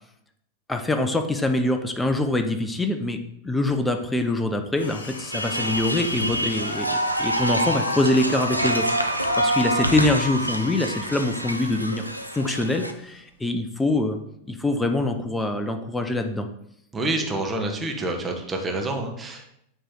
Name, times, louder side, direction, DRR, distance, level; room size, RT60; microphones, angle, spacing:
voice 1, 0.7-8.9 9.4-12.1 12.3-14.2 14.5-16.5, left 2 dB, 10° left, 6 dB, 0.6 m, -24 dB
sound 1, 4.7-13.6, left 2 dB, 70° left, 0.9 m, -43 dB
sound 2, 5.3-12.9, equal, 90° right, 0.5 m, -26 dB
voice 2, 16.9-19.5, right 2 dB, 15° right, 1 dB, 1.1 m, -28 dB
8.8 x 3.3 x 3.8 m, 0.75 s
figure-of-eight pair, 90°, 0 cm